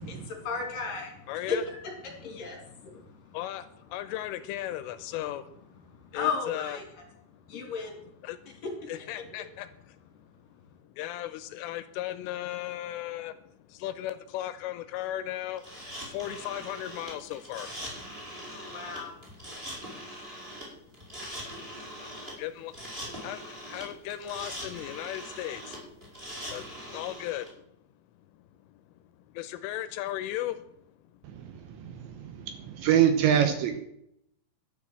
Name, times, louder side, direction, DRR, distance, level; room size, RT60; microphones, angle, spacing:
voice 1, 0.0-1.1 1.5-1.7 2.0-3.0 6.1-6.8 7.5-8.0 8.6-8.7 18.5-19.2, left 5 dB, 50° left, 3 dB, 3.1 m, -34 dB
voice 2, 1.3-1.6 3.3-3.6 3.9-5.4 6.1-6.8 8.2-8.4 8.9-9.7 11.0-13.3 13.8-15.6 16.1-17.7 22.4-22.7 23.2-23.4 23.7-25.6 26.5-26.6 26.9-27.5 29.4-30.5, left 13 dB, 85° left, 12 dB, 3.1 m, -35 dB
sound 1, 15.6-27.5, equal, 10° right, 4.5 m, -42 dB
voice 3, 31.2-33.8, right 9 dB, 75° right, 8 dB, 2.9 m, -26 dB
12.0 x 10.0 x 7.6 m, 0.76 s
omnidirectional pair, 6.0 m